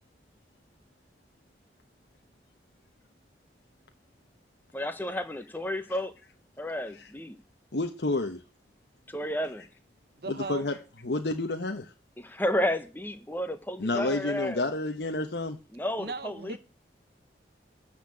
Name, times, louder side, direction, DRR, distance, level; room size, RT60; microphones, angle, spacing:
voice 1, 4.7-6.1 6.6-7.4 9.1-9.7 12.2-14.7 15.7-16.6, left 1 dB, 10° left, 1.0 m, -32 dB
voice 2, 7.7-8.4 10.5-10.7 11.0-11.9 13.8-15.6, left 2 dB, 75° left, 1.1 m, -29 dB
voice 3, 10.2-10.7 16.0-16.6, right 3 dB, 60° right, 1.0 m, -37 dB
12.5 x 4.4 x 8.5 m
head